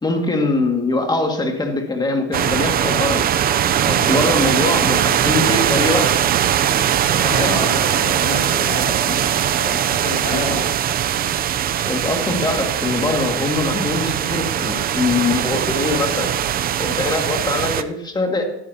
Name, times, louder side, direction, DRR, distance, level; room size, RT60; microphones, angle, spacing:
voice 1, 0.0-3.3 3.9-6.2 7.4-7.6 11.9-16.3 16.8-18.4, left 3 dB, 15° left, 3 dB, 2.1 m, -22 dB
sound 1, 2.3-17.8, right 10 dB, 30° right, 0.6 m, -20 dB
voice 2, 7.2-10.7, left 3 dB, 35° left, 1 dB, 4.6 m, -29 dB
15.0 x 12.0 x 2.9 m, 0.89 s
cardioid pair, 135°, 30 cm